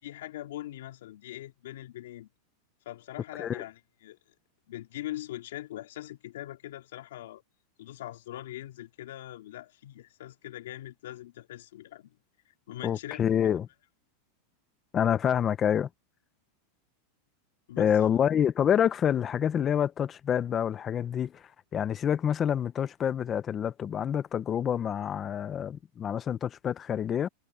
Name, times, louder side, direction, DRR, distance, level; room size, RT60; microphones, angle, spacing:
voice 1, 0.0-2.3 2.8-4.2 4.7-7.4 7.8-12.2 12.7-13.2 17.7-18.0, left 14 dB, 80° left, 3.2 m, -42 dB
voice 2, 12.8-13.7 14.9-15.9 17.8-21.4 21.7-27.3, left 9 dB, 20° left, 0.8 m, -27 dB
supercardioid pair, 155°, 0 cm